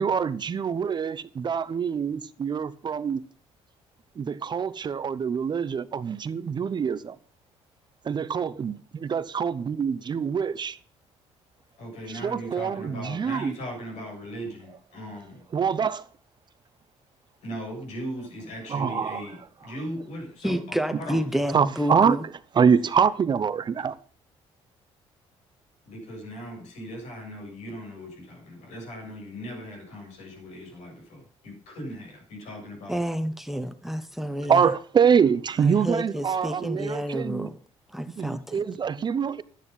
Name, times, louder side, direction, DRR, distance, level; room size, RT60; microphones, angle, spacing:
voice 1, 0.0-3.2 4.2-7.2 8.0-10.8 12.2-13.6 15.5-16.0 18.7-19.2 21.5-22.2 22.6-23.9 34.5-37.5 38.2-39.4, right 6 dB, 40° right, 0.8 m, -25 dB
voice 2, 11.8-15.4 17.4-21.2 25.9-33.0, equal, 80° left, 7.3 m, -38 dB
voice 3, 20.4-22.2 32.9-34.7 35.6-37.6 37.9-38.6, equal, ahead, 1.0 m, -29 dB
12.0 x 9.6 x 5.6 m
cardioid pair, 95°, 12 cm